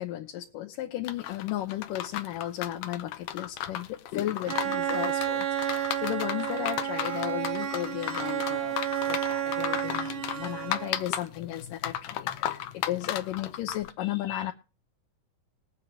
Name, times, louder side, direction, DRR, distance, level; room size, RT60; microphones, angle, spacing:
voice 1, 0.0-8.8 9.1-14.5, left 13 dB, 90° left, 1 dB, 2.6 m, -34 dB
sound 1, 1.0-13.9, left 11 dB, 70° left, 1.8 m, -35 dB
Bowed string instrument, 4.5-11.2, right 10 dB, 65° right, 1.3 m, -31 dB
22.0 x 7.8 x 2.9 m, 0.35 s
omnidirectional pair, 3.7 m